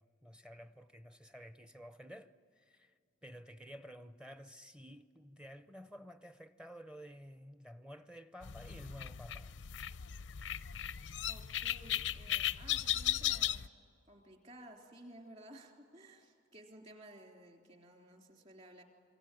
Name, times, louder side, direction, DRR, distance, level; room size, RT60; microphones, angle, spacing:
voice 1, 0.0-9.6, equal, 5° right, 0.6 m, -52 dB
sound 1, 8.4-13.7, left 11 dB, 85° left, 0.6 m, -36 dB
voice 2, 11.3-13.7 14.1-18.8, right 1 dB, 40° right, 3.6 m, -55 dB
27.0 x 23.0 x 9.2 m
head